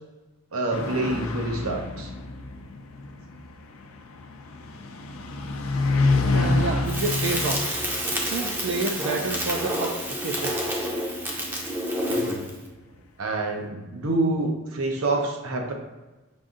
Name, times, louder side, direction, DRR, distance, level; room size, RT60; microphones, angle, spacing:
voice 1, 0.5-2.1 12.1-12.4 13.2-15.7, right 2 dB, 85° right, 2 dB, 0.8 m, -27 dB
sound 1, 0.7-11.7, left 3 dB, 70° left, 0.5 m, -29 dB
voice 2, 6.3-7.7 8.3-10.5, right 3 dB, 60° right, 2 dB, 0.4 m, -29 dB
Crackle, 6.9-12.6, equal, 10° right, 0.6 m, -28 dB
5.2 x 2.6 x 3.7 m, 1.1 s
head